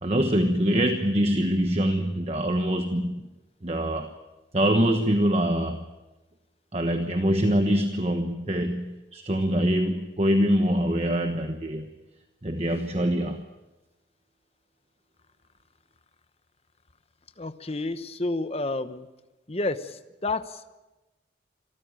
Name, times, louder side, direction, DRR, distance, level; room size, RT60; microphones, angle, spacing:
voice 1, 0.0-3.2 3.6-4.1 4.5-5.8 6.7-11.9 12.4-13.4, equal, 35° right, 6 dB, 1.2 m, -24 dB
voice 2, 17.4-19.1 19.5-20.7, left 2 dB, 35° left, 10 dB, 1.0 m, -30 dB
26.0 x 14.5 x 9.0 m, 1.1 s
head